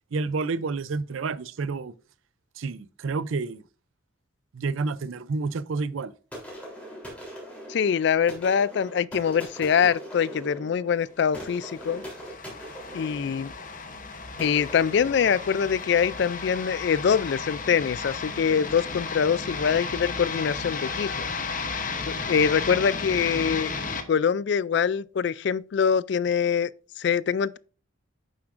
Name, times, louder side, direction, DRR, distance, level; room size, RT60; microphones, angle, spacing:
voice 1, 0.1-1.9 2.6-3.6 4.5-6.1, right 4 dB, 80° right, 0.5 m, -29 dB
sound 1, 6.3-16.0, equal, 5° left, 3.3 m, -42 dB
voice 2, 7.7-12.0 12.9-13.5 14.4-21.3 22.0-23.7 24.1-26.7 27.0-27.6, left 7 dB, 60° left, 0.3 m, -24 dB
sound 2, 11.5-24.0, left 4 dB, 40° left, 0.9 m, -34 dB
9.4 x 7.1 x 2.5 m
head